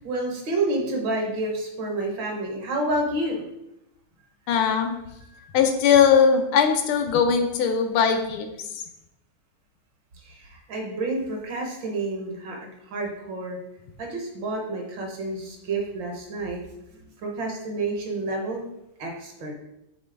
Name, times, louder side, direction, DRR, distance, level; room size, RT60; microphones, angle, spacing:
voice 1, 0.0-3.4 5.3-5.5 10.2-13.6 14.0-16.6 17.2-18.6 19.0-19.5, right 2 dB, 60° right, 1 dB, 1.6 m, -29 dB
voice 2, 4.5-5.0 5.5-8.5, left 7 dB, 80° left, 5 dB, 1.5 m, -20 dB
7.4 x 4.0 x 3.4 m, 0.85 s
omnidirectional pair, 2.4 m